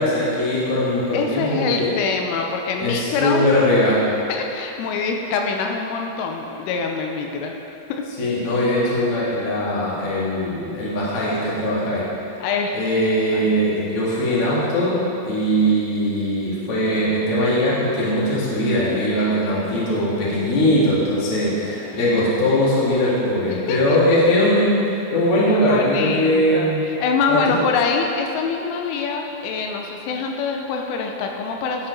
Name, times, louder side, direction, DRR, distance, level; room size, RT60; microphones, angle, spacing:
voice 1, 0.0-1.9 2.8-4.1 8.2-12.0 12.7-26.8 27.3-27.6, equal, 45° left, -7 dB, 2.1 m, -20 dB
voice 2, 1.1-3.5 4.3-7.5 7.9-8.1 12.4-12.8 13.3-13.5 21.4-21.8 23.5-24.0 25.5-31.9, left 5 dB, 85° left, 2 dB, 3.3 m, -25 dB
11.0 x 7.1 x 5.2 m, 2.8 s
omnidirectional pair, 5.5 m